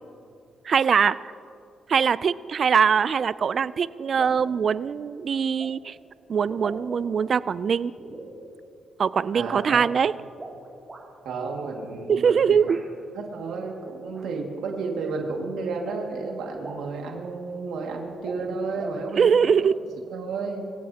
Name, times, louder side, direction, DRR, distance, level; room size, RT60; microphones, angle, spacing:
voice 1, 0.7-1.2 1.9-6.0 6.3-7.9 9.0-10.1 12.1-12.8 19.2-19.8, right 6 dB, 55° right, 17 dB, 0.4 m, -22 dB
sound 1, 3.7-3.9 4.2-4.5 5.6-5.7 6.4-7.3 8.0-8.3 10.3-11.0 12.7-12.8 14.1-14.2 15.4-15.5 15.9-16.0 16.2-16.3 16.5-16.9 17.8-18.5 18.8-19.0, right 2 dB, 25° right, 3.9 m, -41 dB
voice 2, 9.3-9.8 11.2-12.7 13.1-19.5 20.1-20.7, right 4 dB, 90° right, 1 dB, 2.1 m, -32 dB
24.5 x 16.0 x 2.9 m, 2.5 s
cardioid pair, 95°, 0 cm